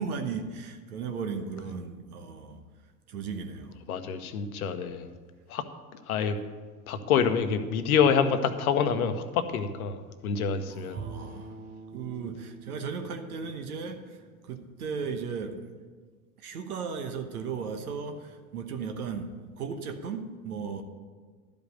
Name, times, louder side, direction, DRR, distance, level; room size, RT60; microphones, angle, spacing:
voice 1, 0.0-2.6 3.1-3.8 10.7-11.5 11.9-15.6 16.4-20.8, right 5 dB, 80° right, 6 dB, 1.1 m, -36 dB
voice 2, 3.9-5.1 5.5-5.7 6.1-6.4 6.9-11.0, left 6 dB, 75° left, 9 dB, 0.9 m, -27 dB
Bowed string instrument, 11.0-15.2, right 4 dB, 20° right, 0.8 m, -46 dB
12.0 x 5.3 x 6.5 m, 1.5 s
hypercardioid pair, 85°, 44 cm